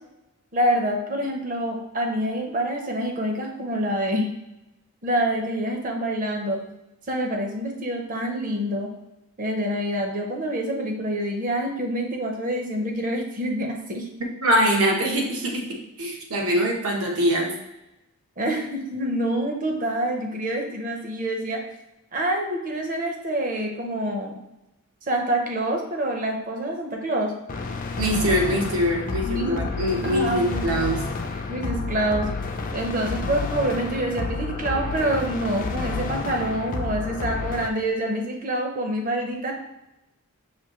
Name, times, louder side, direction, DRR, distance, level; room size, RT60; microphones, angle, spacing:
voice 1, 0.5-4.3 5.0-6.6 7.1-8.9 9.4-14.1 18.4-21.6 22.1-24.4 25.1-27.3 29.2-29.6 30.0-30.7 31.5-32.3 32.7-39.5, right 1 dB, 35° right, 2 dB, 0.6 m, -26 dB
voice 2, 14.4-15.6 16.0-17.5 28.0-31.0, equal, 75° right, 0 dB, 1.0 m, -23 dB
sound 1, 27.5-37.7, left 4 dB, 35° left, 0.3 m, -30 dB
5.9 x 2.7 x 3.0 m, 0.94 s
head